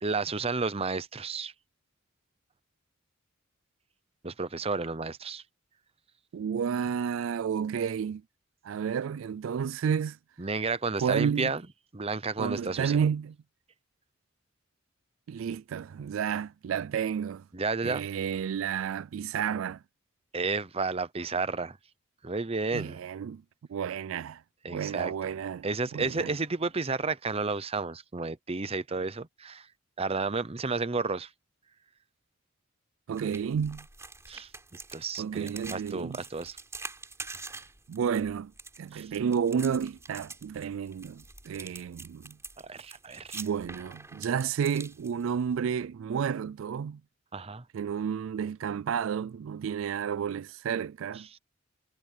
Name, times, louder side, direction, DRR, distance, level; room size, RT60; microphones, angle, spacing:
voice 1, 0.0-1.5 4.2-5.4 10.4-11.6 11.9-13.0 17.5-18.1 20.3-21.8 22.2-23.0 24.6-25.1 25.6-29.7 30.0-31.3 34.3-36.6 38.9-39.1 42.6-43.4 47.3-47.6, right 4 dB, 30° right, 0.8 m, -32 dB
voice 2, 6.3-8.2 8.6-10.2 11.0-11.5 12.4-13.4 15.3-17.4 17.8-19.8 22.7-23.4 23.7-24.4 24.7-25.7 25.9-26.3 33.1-33.9 35.2-36.2 37.5-37.6 37.9-38.5 38.8-42.4 43.3-47.0 47.7-51.3, right 7 dB, 70° right, 0.3 m, -31 dB
sound 1, 33.1-45.6, right 3 dB, 15° right, 4.9 m, -46 dB
head